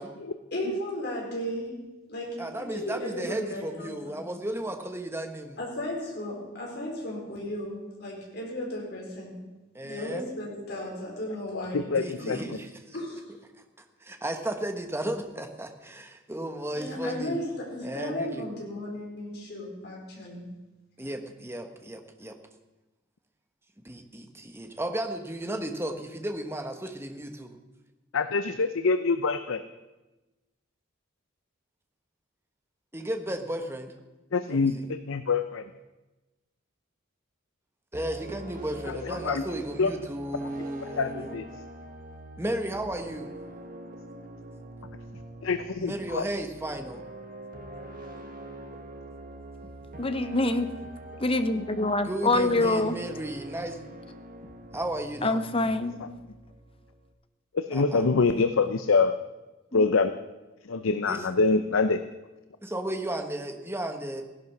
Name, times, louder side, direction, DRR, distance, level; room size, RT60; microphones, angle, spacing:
voice 1, 0.5-1.7 2.1-4.2 5.6-9.3 9.8-11.9 12.2-12.4 12.9-13.2 16.7-20.4, left 1 dB, 50° left, -2 dB, 4.6 m, -35 dB
voice 2, 2.4-5.6 9.7-10.2 11.9-13.0 14.0-17.4 17.8-18.5 21.0-22.4 23.8-27.6 32.9-33.9 34.5-34.9 37.9-41.3 42.4-43.3 45.8-47.1 52.0-53.8 54.7-55.4 57.7-58.0 61.1-61.3 62.6-64.2, right 1 dB, 10° right, 5 dB, 1.2 m, -34 dB
voice 3, 11.5-12.6 28.1-29.6 34.3-35.7 38.9-39.4 39.8-39.9 40.8-41.5 45.4-46.2 56.0-56.1 57.5-59.1 59.7-60.1 60.7-62.0, left 4 dB, 75° left, 10 dB, 0.6 m, -25 dB
sound 1, 37.9-57.1, right 1 dB, 40° right, 1.6 m, -44 dB
voice 4, 50.0-50.7 51.2-53.0 55.2-55.9 59.7-59.8, left 2 dB, 25° left, 10 dB, 0.8 m, -25 dB
16.0 x 11.0 x 6.0 m, 1.1 s
head